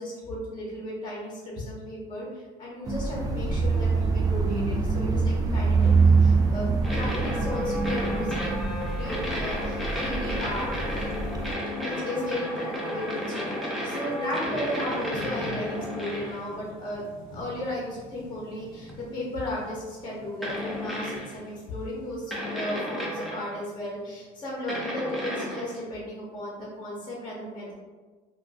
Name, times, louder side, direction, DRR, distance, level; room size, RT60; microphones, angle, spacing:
voice 1, 0.0-5.9 6.2-11.1 11.8-17.0 17.3-27.7, left 1 dB, 30° left, -4 dB, 1.0 m, -35 dB
sound 1, 2.9-11.5, right 4 dB, 25° right, 0.3 m, -25 dB
sound 2, 5.8-23.6, left 2 dB, 75° left, 0.6 m, -47 dB
sound 3, 6.8-16.5 18.9-19.0 20.4-21.4 22.3-23.6 24.7-25.8, left 1 dB, ahead, 0.7 m, -32 dB
2.4 x 2.2 x 3.5 m, 1.4 s
supercardioid pair, 100°, 15 cm